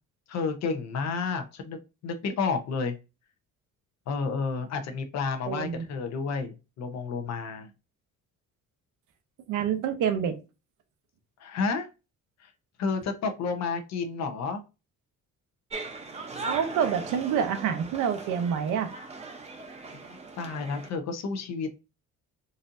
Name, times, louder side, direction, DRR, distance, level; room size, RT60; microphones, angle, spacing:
voice 1, 0.3-3.0 4.1-7.7 11.4-11.9 12.8-14.6 20.1-21.8, left 4 dB, 60° left, 0.7 m, -31 dB
voice 2, 5.5-5.8 9.5-10.4 16.4-18.9, right 8 dB, 80° right, 0.7 m, -27 dB
sound 1, 15.7-20.9, right 3 dB, 20° right, 0.6 m, -39 dB
4.1 x 2.6 x 2.5 m
cardioid pair, 145°, 30 cm